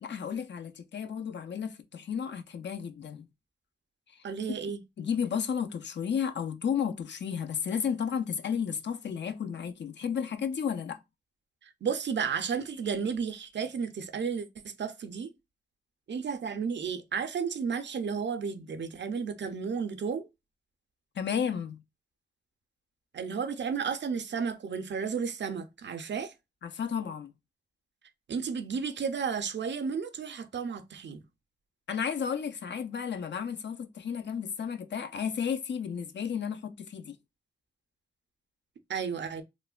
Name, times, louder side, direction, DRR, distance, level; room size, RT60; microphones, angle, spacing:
voice 1, 0.0-3.3 4.1-4.2 5.0-11.0 21.2-21.8 26.6-27.3 31.9-37.2, left 7 dB, 75° left, 0.4 m, -33 dB
voice 2, 4.2-4.8 11.6-15.3 16.1-20.3 23.1-26.3 28.3-31.2 38.9-39.4, right 6 dB, 75° right, 0.4 m, -33 dB
3.1 x 2.1 x 2.3 m
cardioid pair, 50°, 18 cm